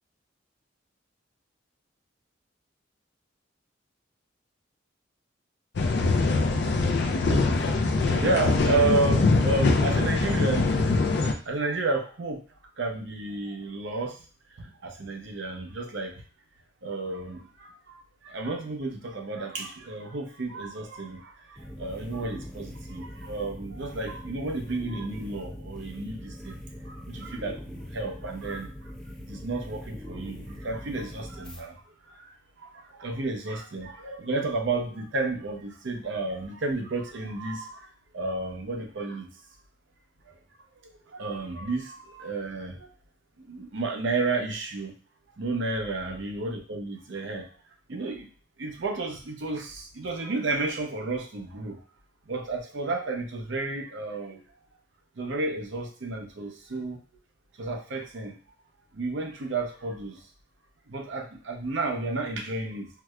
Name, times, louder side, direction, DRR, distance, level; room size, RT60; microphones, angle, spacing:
sound 1, 5.8-11.3, left 3 dB, 60° left, 0.4 m, -23 dB
voice 1, 7.6-10.9 11.1-12.4 12.8-14.2 14.5-16.2 16.8-26.6 26.8-28.9 29.2-39.3 40.3-40.4 41.1-42.9 43.4-44.9 45.4-47.5 47.9-48.3 48.6-51.8 52.3-54.4 55.2-57.0 57.6-58.4 58.9-60.2 60.9-62.9, right 3 dB, 75° right, 3 dB, 0.6 m, -32 dB
sound 2, 21.5-31.6, equal, 5° left, 0.4 m, -42 dB
4.6 x 2.1 x 2.3 m, 0.38 s
head